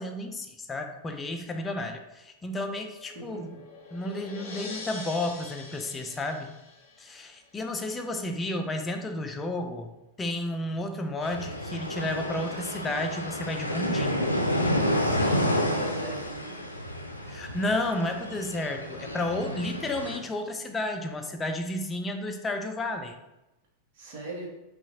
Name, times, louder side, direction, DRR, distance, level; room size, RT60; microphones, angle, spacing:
voice 1, 0.0-3.5 3.9-6.5 7.0-9.9 10.2-14.3 17.2-23.2, left 1 dB, 15° left, 5 dB, 0.5 m, -32 dB
sound 1, 2.5-7.6, left 3 dB, 45° left, 0.7 m, -44 dB
sound 2, 11.2-20.2, equal, 85° left, 0.5 m, -30 dB
voice 2, 15.0-16.6 23.9-24.5, right 1 dB, 45° right, -5 dB, 1.1 m, -38 dB
5.6 x 2.4 x 2.7 m, 0.95 s
figure-of-eight pair, 90°, 0 cm